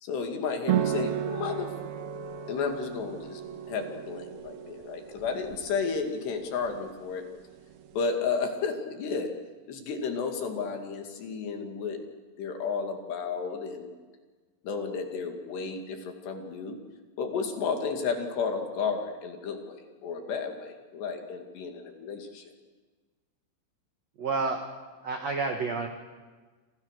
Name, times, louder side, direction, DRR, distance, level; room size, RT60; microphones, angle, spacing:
voice 1, 0.0-1.7 2.5-3.4 3.7-7.3 7.9-9.3 9.7-12.0 12.4-14.0 14.6-16.8 17.2-22.4, left 5 dB, 60° left, 4 dB, 4.1 m, -32 dB
sound 1, 0.7-8.0, right 10 dB, 65° right, 2.7 m, -35 dB
voice 2, 24.2-24.7 25.0-25.9, right 4 dB, 80° right, 4 dB, 1.5 m, -29 dB
28.5 x 26.5 x 6.6 m, 1.4 s
omnidirectional pair, 5.9 m